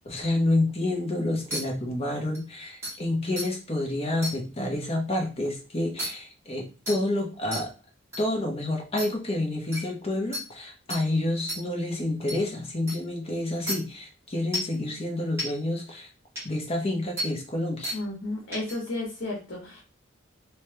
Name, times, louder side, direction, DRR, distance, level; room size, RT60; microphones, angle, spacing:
voice 1, 0.0-7.7 8.2-16.1 16.4-18.0, left 1 dB, 30° left, 0 dB, 1.0 m, -29 dB
sound 1, 1.5-1.6 2.3-2.4 2.8-2.9 3.4-3.5 4.2-4.3 6.0-6.1 6.9-7.0 7.5-7.6 8.1-8.2 9.0-9.1 9.7-9.8 10.3-10.4 10.9-11.0 11.5-11.6 12.3-12.4 12.9-13.0 13.7-13.8 14.5-14.7 15.4-15.5 16.4-16.5 17.2-17.3 17.8-18.0 18.5-18.7, equal, 15° right, 1.7 m, -31 dB
voice 2, 17.9-19.8, left 2 dB, 70° left, -3 dB, 1.3 m, -33 dB
3.2 x 3.1 x 3.3 m, 0.33 s
head